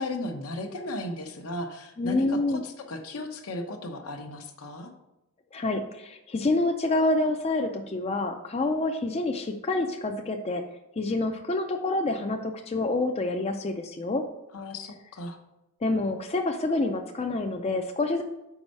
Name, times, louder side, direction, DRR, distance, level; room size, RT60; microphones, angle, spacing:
voice 1, 0.0-4.9 14.5-15.4, left 1 dB, 75° left, 5 dB, 0.8 m, -35 dB
voice 2, 2.0-2.6 5.5-10.6 11.0-14.2 15.8-18.2, left 2 dB, 30° left, 4 dB, 0.4 m, -27 dB
5.3 x 4.8 x 5.3 m, 0.92 s
head